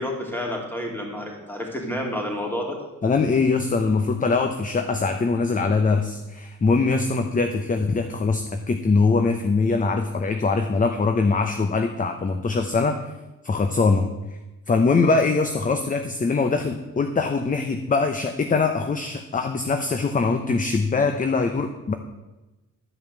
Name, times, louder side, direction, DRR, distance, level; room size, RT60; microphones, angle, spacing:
voice 1, 0.0-2.8, left 1 dB, 5° left, 0 dB, 3.2 m, -29 dB
voice 2, 3.0-13.0 13.4-14.1 14.7-21.9, left 4 dB, 25° left, 7 dB, 0.9 m, -22 dB
12.0 x 5.6 x 7.8 m, 1.1 s
cardioid pair, 90°, 30 cm